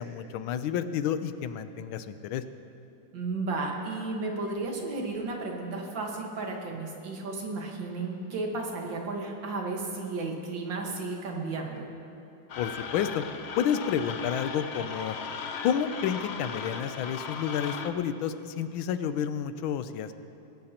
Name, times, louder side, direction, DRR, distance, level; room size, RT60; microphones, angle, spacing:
voice 1, 0.0-2.4 12.6-13.2 13.6-15.2 15.6-20.1, left 8 dB, 90° left, 11 dB, 1.5 m, -30 dB
voice 2, 3.1-11.9, right 3 dB, 70° right, 0 dB, 2.2 m, -33 dB
sound 1, 12.5-17.9, left 5 dB, 75° left, 0.6 m, -37 dB
19.0 x 17.0 x 2.9 m, 2.8 s
omnidirectional pair, 2.1 m